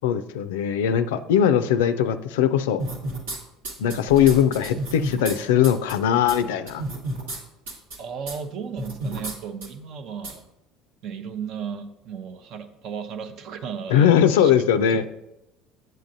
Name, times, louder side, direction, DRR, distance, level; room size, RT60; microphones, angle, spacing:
voice 1, 0.0-2.8 3.8-6.8 13.9-15.0, left 9 dB, 80° left, 11 dB, 0.4 m, -20 dB
sound 1, 2.8-3.4 3.6-5.4 5.6-5.9 6.3-6.4 6.7-7.4 7.7-8.0 8.3-8.4 8.8-9.3 9.6-9.7 10.2-10.3, right 2 dB, 90° right, 1.4 m, -31 dB
voice 2, 8.0-10.4 11.0-15.1, right 7 dB, 60° right, 8 dB, 0.6 m, -35 dB
7.6 x 7.3 x 2.6 m, 0.89 s
hypercardioid pair, 75°, 0 cm